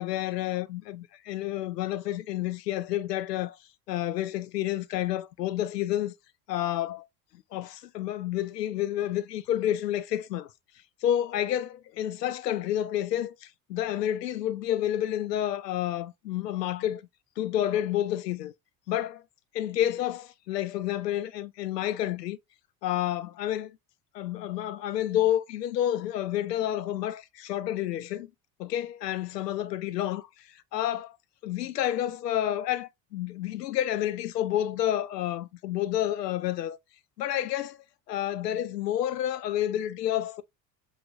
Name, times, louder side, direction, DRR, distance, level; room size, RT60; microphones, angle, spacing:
voice 1, 0.0-3.6 3.9-6.2 6.5-7.1 7.5-10.5 11.0-17.0 17.4-18.5 18.9-19.2 19.5-22.4 22.8-23.8 24.1-28.3 28.6-31.2 31.4-36.8 37.2-37.8 38.1-40.4, left 12 dB, 75° left, 0.6 m, -29 dB
4.8 x 3.0 x 2.5 m
figure-of-eight pair, 60°, 50 cm